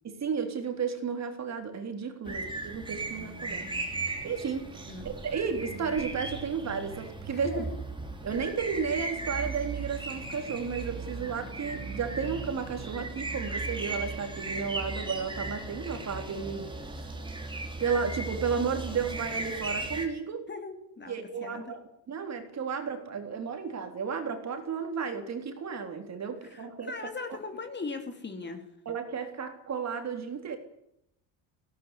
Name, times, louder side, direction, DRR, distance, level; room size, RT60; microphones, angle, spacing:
voice 1, 0.0-3.7 4.0-7.6 8.2-17.1 17.8-20.4 21.1-21.8 22.1-26.9 28.9-30.6, right 6 dB, 30° right, 5 dB, 3.6 m, -33 dB
sound 1, 2.2-20.1, right 3 dB, 10° right, 3.4 m, -37 dB
voice 2, 7.3-7.6 20.5-21.7 26.4-28.6, left 4 dB, 20° left, 6 dB, 2.8 m, -39 dB
18.5 x 17.5 x 10.0 m, 0.76 s
cardioid pair, 145°, 50 cm